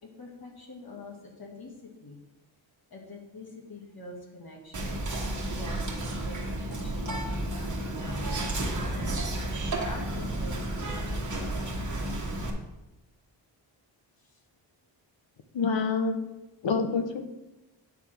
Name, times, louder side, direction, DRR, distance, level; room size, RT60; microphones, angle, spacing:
voice 1, 0.0-2.2 2.9-5.0 5.6-9.1 9.7-11.5 14.2-14.4 17.0-17.1, left 2 dB, 50° left, 0 dB, 2.1 m, -45 dB
Whispering, 4.7-12.5, right 1 dB, 40° right, 1.5 m, -32 dB
voice 2, 15.5-16.2 16.6-17.2, left 4 dB, 70° left, 7 dB, 1.0 m, -27 dB
9.1 x 3.6 x 6.0 m, 1.0 s
wide cardioid pair, 100°, 47 cm